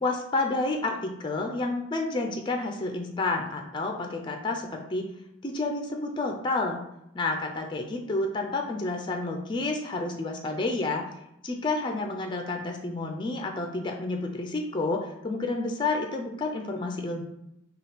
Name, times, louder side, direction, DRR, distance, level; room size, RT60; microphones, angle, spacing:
voice 1, 0.0-5.1 5.4-6.8 7.1-11.0 11.4-17.2, left 2 dB, 25° left, 3 dB, 0.4 m, -30 dB
3.4 x 2.3 x 4.0 m, 0.84 s
head